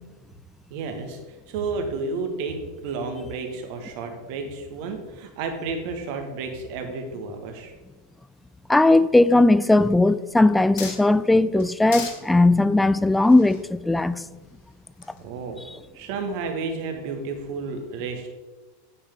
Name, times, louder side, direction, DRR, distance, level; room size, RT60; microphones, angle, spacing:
voice 1, 0.7-2.6 2.8-7.7 15.2-15.6 15.9-18.3, right 4 dB, 50° right, 1.5 m, -31 dB
voice 2, 8.7-14.2, left 2 dB, 5° left, 0.4 m, -18 dB
sound 1, 10.3-11.3 11.6-12.2 13.1-14.5 15.0-15.3, left 6 dB, 55° left, 1.9 m, -37 dB
8.7 x 8.6 x 3.7 m
figure-of-eight pair, 85°, 0 cm